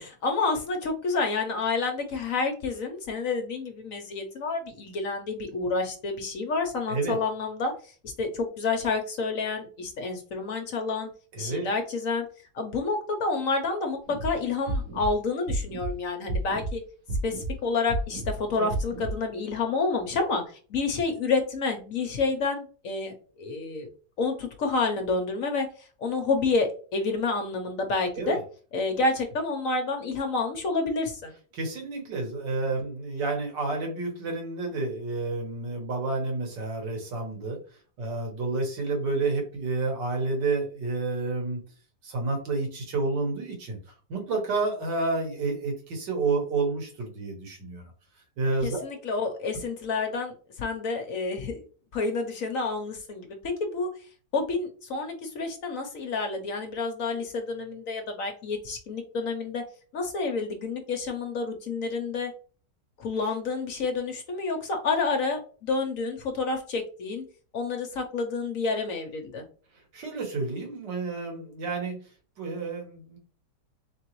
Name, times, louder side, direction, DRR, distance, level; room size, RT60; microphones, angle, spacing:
voice 1, 0.0-11.1 11.4-12.2 12.5-16.8 17.2-23.9 24.2-28.4 28.7-31.3 48.6-51.6 51.9-53.9 54.3-59.6 59.9-62.3 63.0-67.2 67.5-69.5, left 4 dB, 60° left, 4 dB, 1.0 m, -29 dB
voice 2, 11.3-11.7 18.6-18.7 28.2-28.4 31.5-37.6 38.0-41.6 42.0-43.8 44.1-47.8 48.4-48.8 69.9-72.0 72.4-73.2, right 3 dB, 85° right, 2 dB, 1.9 m, -30 dB
sound 1, 14.1-14.3 14.7-15.1 15.5-15.9 16.3-16.7 17.1-17.5 17.9-18.3 18.7-19.1, right 2 dB, 60° right, 1.4 m, -30 dB
3.9 x 3.7 x 3.0 m, 0.39 s
omnidirectional pair, 1.8 m